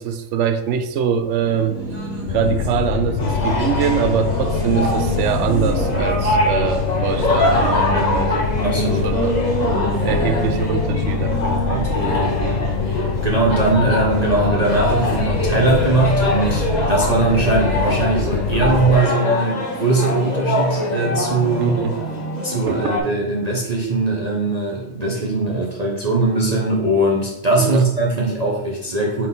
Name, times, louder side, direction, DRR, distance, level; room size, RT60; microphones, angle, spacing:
voice 1, 0.0-1.8 2.3-8.5 8.8-9.4 10.0-11.9 21.6-22.0 22.7-22.8 27.6-27.8, right 7 dB, 65° right, 9 dB, 0.8 m, -23 dB
Race car auto racing, 1.2-17.4, right 2 dB, 80° right, 2.0 m, -31 dB
sound 1, 2.3-19.0, left 6 dB, 65° left, 0.6 m, -24 dB
sound 2, 3.2-23.0, left 1 dB, 35° left, 1.0 m, -24 dB
voice 2, 8.6-9.1 11.7-21.8 22.4-29.3, right 2 dB, 35° right, -4 dB, 0.9 m, -20 dB
4.4 x 3.9 x 5.5 m, 0.95 s
omnidirectional pair, 1.5 m